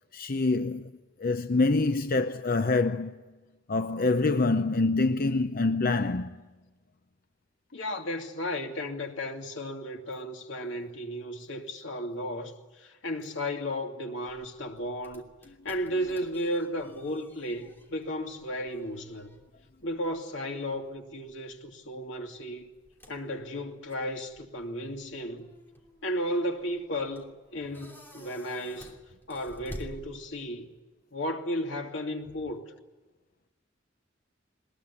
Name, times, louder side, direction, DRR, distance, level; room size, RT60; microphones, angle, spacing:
voice 1, 0.1-0.9 1.2-3.1 3.7-6.4, left 3 dB, 50° left, 0.7 m, -25 dB
voice 2, 7.7-15.3 15.6-19.3 19.8-22.7 23.1-25.5 26.0-29.0 29.3-30.7 31.1-32.6, equal, 75° left, 2.7 m, -34 dB
sound 1, 14.3-30.7, equal, 10° left, 2.9 m, -52 dB
21.5 x 20.5 x 9.7 m
head